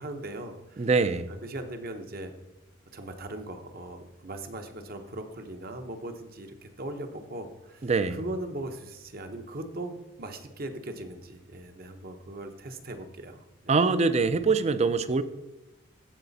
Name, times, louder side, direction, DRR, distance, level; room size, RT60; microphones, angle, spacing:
voice 1, 0.0-0.9 1.3-2.3 2.9-13.7, right 1 dB, 50° right, 6 dB, 0.9 m, -39 dB
voice 2, 0.8-1.3 7.8-8.2 13.7-15.2, right 4 dB, 35° right, 13 dB, 0.4 m, -24 dB
15.0 x 5.0 x 4.1 m, 1.0 s
head